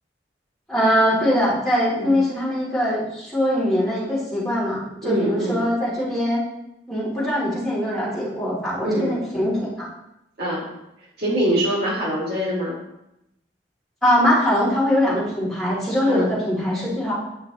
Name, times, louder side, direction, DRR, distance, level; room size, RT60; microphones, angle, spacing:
voice 1, 0.7-6.4 6.9-9.9 14.0-17.2, equal, ahead, -9 dB, 3.1 m, -22 dB
voice 2, 5.0-5.6 8.8-9.1 10.4-10.7 11.2-12.8 16.1-16.3, right 1 dB, 65° right, -6 dB, 2.8 m, -24 dB
9.6 x 5.6 x 3.1 m, 0.85 s
head